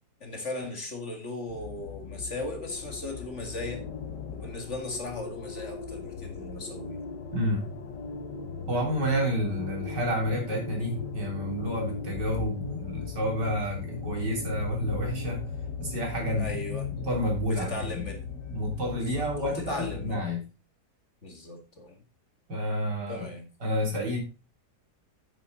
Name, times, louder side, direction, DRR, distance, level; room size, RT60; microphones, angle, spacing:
voice 1, 0.2-3.8 4.3-7.0 16.3-16.9 17.5-18.2 18.9-20.2 21.2-22.0 23.1-23.5, left 2 dB, 45° left, 4 dB, 2.4 m, -37 dB
sound 1, 1.5-20.2, left 6 dB, 90° left, 1.9 m, -38 dB
voice 2, 7.3-7.7 8.7-15.4 15.8-16.5 17.0-18.0 18.5-20.4 22.5-23.3 23.6-24.2, equal, 85° right, 0 dB, 4.1 m, -29 dB
9.0 x 8.5 x 3.9 m, 0.31 s
omnidirectional pair, 1.8 m